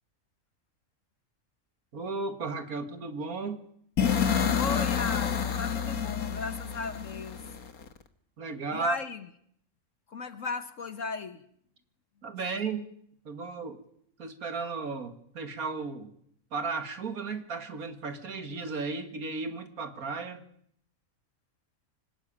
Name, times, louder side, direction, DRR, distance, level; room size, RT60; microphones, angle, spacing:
voice 1, 1.9-3.6 8.4-9.0 12.2-12.8 13.3-13.8 14.2-16.1 16.5-20.4, right 4 dB, 85° right, 8 dB, 2.4 m, -34 dB
sound 1, 4.0-7.9, left 7 dB, 90° left, 2.0 m, -28 dB
voice 2, 4.5-7.4 8.7-9.3 10.1-11.4, left 4 dB, 65° left, 11 dB, 1.5 m, -36 dB
25.5 x 20.0 x 8.8 m, 0.68 s
omnidirectional pair, 1.5 m